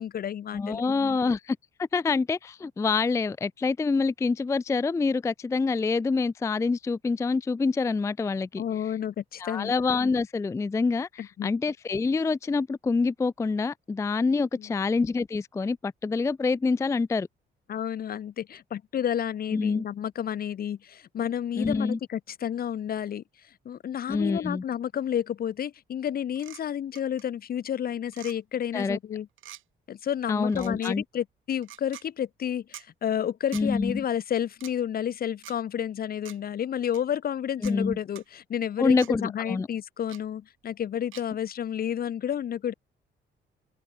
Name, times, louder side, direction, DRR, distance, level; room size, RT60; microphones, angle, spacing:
voice 1, 0.0-0.8 8.6-9.7 11.2-11.5 14.6-14.7 17.7-23.2 23.6-29.3 29.9-42.7, left 9 dB, 50° left, 0.7 m, -31 dB
voice 2, 0.5-8.6 9.4-17.3 19.5-19.8 21.6-22.0 24.1-24.6 28.7-29.0 30.3-31.0 33.5-34.0 37.6-38.0 38.8-39.7, left 4 dB, 15° left, 0.3 m, -26 dB
sound 1, 26.3-26.6 26.9-27.2 28.1-28.4 29.4-29.6 30.5-30.9 31.6-32.0 32.7-32.9 33.5-33.7 34.5-34.7 35.4-35.6 36.2-36.4 36.9-37.0 37.6-37.7 38.1-38.2 39.0-39.1 40.1-40.2 41.1-41.2, right 13 dB, 80° right, 4.5 m, -45 dB
cardioid pair, 90°, 20 cm